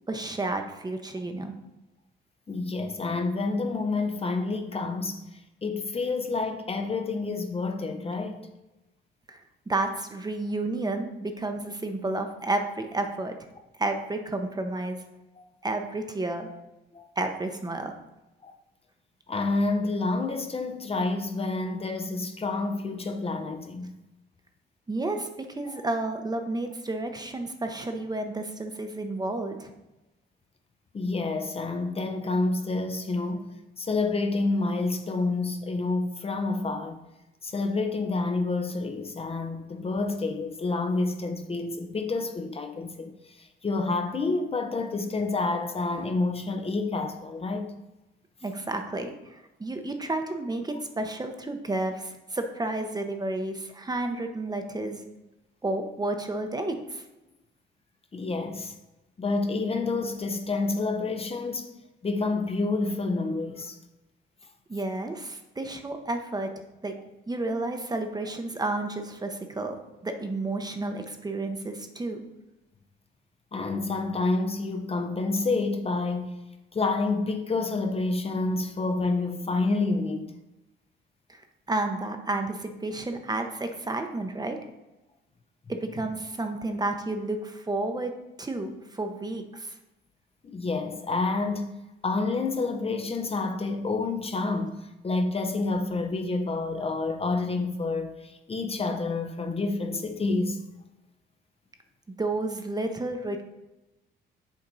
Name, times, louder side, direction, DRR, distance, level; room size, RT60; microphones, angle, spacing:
voice 1, 0.1-1.5 9.3-13.3 13.8-15.0 15.6-16.5 17.2-17.9 24.9-29.7 48.4-55.0 55.6-57.0 64.7-66.5 66.8-66.9 67.3-69.8 70.0-72.2 81.3-81.4 81.7-84.6 85.7-88.1 88.4-89.8 102.2-103.4, right 2 dB, 20° right, 0.8 m, -31 dB
voice 2, 2.5-8.5 15.4-15.5 16.9-17.1 18.4-18.5 19.3-23.9 25.7-25.8 30.9-33.5 33.8-37.0 37.4-47.7 58.1-58.7 59.2-61.7 62.0-63.8 73.5-76.4 76.7-80.4 90.4-91.7 92.0-100.6, left 3 dB, 30° left, 0.7 m, -28 dB
7.2 x 4.2 x 3.9 m
cardioid pair, 90°, 20 cm